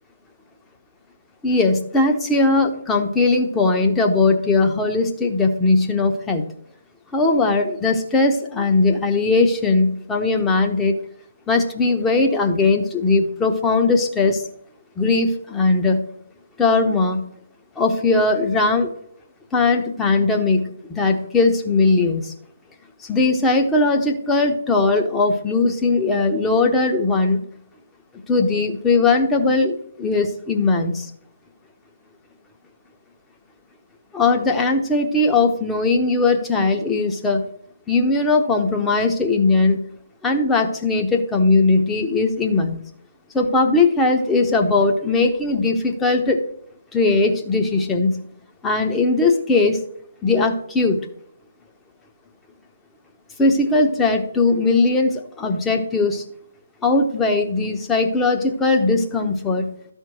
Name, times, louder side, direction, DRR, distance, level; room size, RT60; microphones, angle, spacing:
voice 1, 1.4-6.4 7.1-11.0 11.5-14.4 15.0-16.0 16.6-17.3 17.8-18.9 19.5-22.3 23.0-27.4 28.3-31.1 34.1-37.4 37.9-39.8 40.2-42.8 43.3-46.4 46.9-48.2 48.6-49.8 50.2-51.0 53.4-56.2 56.8-59.7, left 3 dB, 10° left, 3 dB, 1.0 m, -19 dB
13.0 x 4.5 x 6.3 m, 0.70 s
figure-of-eight pair, 140°, 0 cm